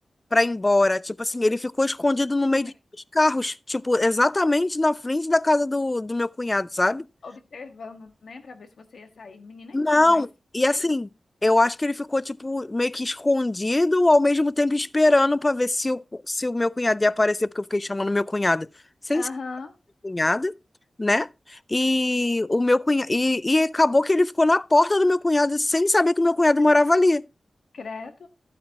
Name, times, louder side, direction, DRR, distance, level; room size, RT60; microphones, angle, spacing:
voice 1, 0.3-2.7 3.1-7.1 9.7-10.3 10.5-11.1 11.4-18.7 19.1-19.2 20.0-20.6 21.0-27.2, left 2 dB, 25° left, 0.4 m, -22 dB
voice 2, 7.2-10.2 10.7-10.9 19.1-19.7 27.7-28.3, left 4 dB, 80° left, 1.4 m, -39 dB
12.0 x 8.6 x 2.9 m
cardioid pair, 60°, 0 cm